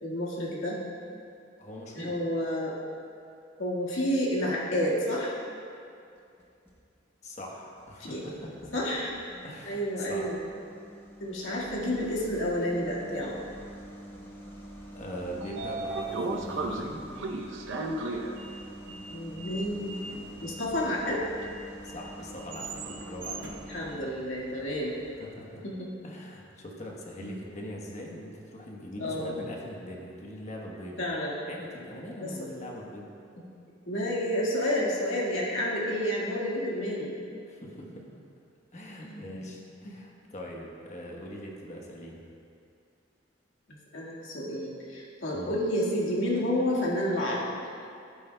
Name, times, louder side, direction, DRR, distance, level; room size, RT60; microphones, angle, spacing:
voice 1, 0.0-0.8 1.9-2.8 3.6-5.3 8.0-8.2 8.7-9.1 9.7-10.4 11.2-13.4 19.1-20.0 20.4-21.2 23.7-25.0 25.6-25.9 27.2-27.3 29.0-29.4 31.0-31.3 32.2-32.5 33.9-37.3 39.0-39.5 39.8-40.0 43.9-47.5, equal, 85° left, -5 dB, 1.8 m, -30 dB
voice 2, 1.6-2.2 7.2-8.7 9.4-10.4 14.9-17.0 21.8-23.5 25.2-25.7 26.0-31.1 31.5-33.1 37.5-38.0 38.7-42.2 45.3-45.5, equal, 40° left, -1 dB, 1.1 m, -42 dB
sound 1, 6.2-6.8 7.3-23.9, right 1 dB, 10° left, 1.0 m, -47 dB
Sliding door, 15.0-25.1, right 2 dB, 75° right, 0.7 m, -38 dB
12.0 x 9.3 x 2.3 m, 2.5 s
head